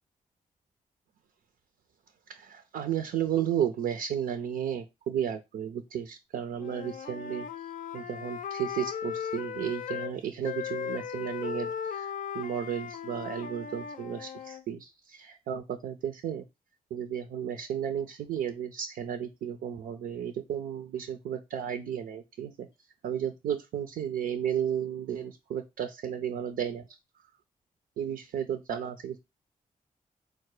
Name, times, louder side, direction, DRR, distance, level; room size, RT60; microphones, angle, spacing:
voice 1, 2.3-7.5 7.9-16.4 16.9-22.7 23.0-26.8 28.0-29.2, right 9 dB, 90° right, 7 dB, 0.4 m, -33 dB
Wind instrument woodwind instrument, 6.6-10.1 10.4-14.6, left 8 dB, 60° left, 0.4 m, -37 dB
4.5 x 2.1 x 4.7 m, 0.23 s
supercardioid pair, 45°, 15 cm